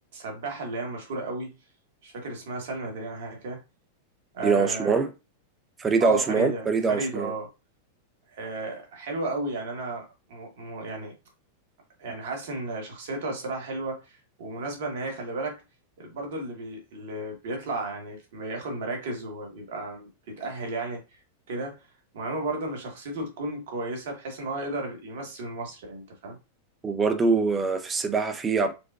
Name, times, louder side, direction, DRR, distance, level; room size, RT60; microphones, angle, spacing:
voice 1, 0.1-1.5 2.0-3.6 4.3-5.0 6.0-7.5 8.3-11.1 12.0-14.0 14.4-15.6 16.0-21.0 21.5-21.8 22.1-26.4, right 2 dB, 65° right, 1.3 m, -33 dB
voice 2, 4.4-5.1 5.8-7.3 26.8-28.7, right 4 dB, 20° right, 0.6 m, -24 dB
4.6 x 2.2 x 2.4 m
hypercardioid pair, 95°, 0 cm